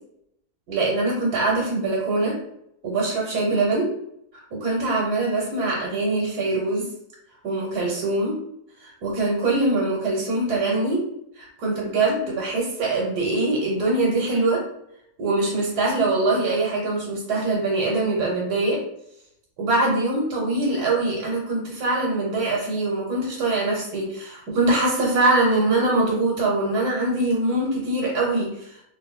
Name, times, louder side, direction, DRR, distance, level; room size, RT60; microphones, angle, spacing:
voice 1, 0.7-2.3 2.8-3.9 4.5-6.8 7.4-8.3 8.8-11.0 11.3-14.6 15.2-18.8 19.6-28.8, right 2 dB, 85° right, -3 dB, 1.4 m, -23 dB
3.3 x 2.6 x 4.0 m, 0.77 s
omnidirectional pair, 1.6 m